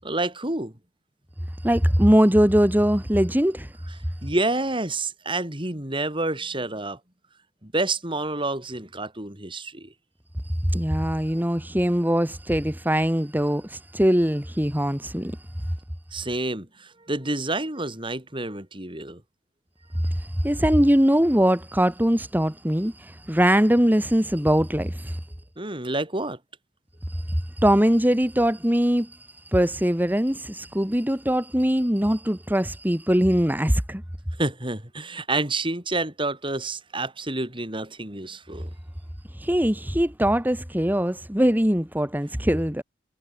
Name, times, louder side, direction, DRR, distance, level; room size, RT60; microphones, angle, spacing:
voice 1, 0.0-0.7 4.2-7.0 7.6-9.9 16.1-19.2 25.6-26.4 34.4-38.7, right 2 dB, 30° right, 5.8 m, -28 dB
voice 2, 1.6-3.7 10.4-15.4 20.0-25.2 27.1-29.2 29.5-34.0 39.3-42.8, equal, 10° right, 2.3 m, -22 dB
head